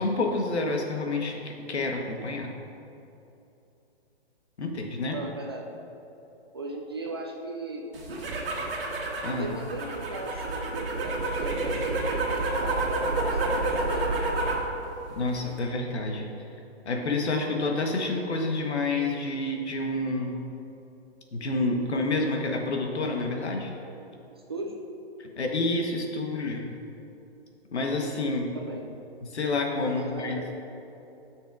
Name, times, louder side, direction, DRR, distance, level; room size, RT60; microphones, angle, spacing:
voice 1, 0.0-2.5 4.6-5.2 9.2-9.5 15.1-16.3 16.8-20.4 21.3-23.7 25.2-26.7 27.7-28.6 29.2-30.4, left 2 dB, 85° left, 2 dB, 1.3 m, -28 dB
voice 2, 5.1-5.7 6.5-7.8 9.2-14.1 24.5-24.8 28.5-28.8 29.8-30.5, right 2 dB, 25° right, 0 dB, 0.4 m, -38 dB
sound 1, 7.9-14.7 15.0-15.6, right 2 dB, 55° right, 1.7 m, -29 dB
13.5 x 6.2 x 2.6 m, 2.9 s
hypercardioid pair, 160°, 33 cm